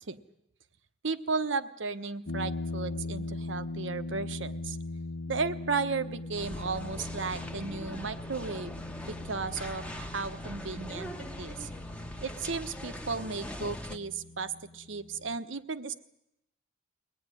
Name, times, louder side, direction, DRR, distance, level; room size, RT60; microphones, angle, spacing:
voice 1, 1.0-4.8 5.3-8.7 9.1-11.7 12.2-15.9, right 4 dB, 85° right, 11 dB, 1.1 m, -34 dB
sound 1, 2.3-15.4, left 2 dB, 85° left, 0.9 m, -40 dB
sound 2, 6.4-14.0, equal, 5° left, 1.1 m, -42 dB
23.0 x 19.0 x 9.9 m, 0.87 s
head